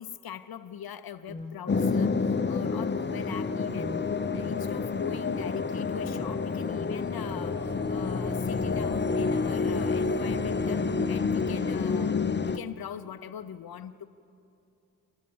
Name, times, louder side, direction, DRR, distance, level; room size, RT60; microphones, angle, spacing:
voice 1, 0.0-4.0 4.3-12.2 12.4-14.0, left 9 dB, 80° left, 10 dB, 0.6 m, -41 dB
sound 1, 1.3-11.0, equal, 20° right, 4.1 m, -42 dB
sound 2, 1.7-12.6, left 4 dB, 30° left, 0.6 m, -28 dB
26.0 x 15.0 x 7.0 m, 2.8 s
cardioid pair, 45°, 36 cm